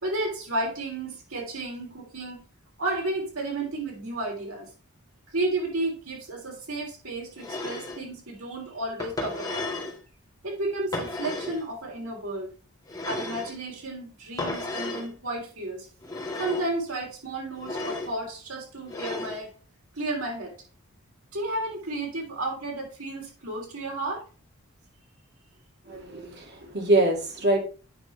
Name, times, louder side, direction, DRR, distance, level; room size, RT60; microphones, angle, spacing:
voice 1, 0.0-2.4 2.8-4.7 5.3-9.6 10.4-12.5 13.0-15.9 16.4-19.5 19.9-20.6 21.3-24.2, right 2 dB, 80° right, 0 dB, 3.3 m, -32 dB
sound 1, 7.4-8.0 9.0-10.0 10.9-11.6 12.9-13.6 14.4-15.1 16.0-16.7 17.6-18.1 18.9-19.4, left 2 dB, 15° left, 2.0 m, -33 dB
voice 2, 25.9-27.6, right 2 dB, 50° right, 1 dB, 2.3 m, -24 dB
8.9 x 6.1 x 3.3 m, 0.36 s
head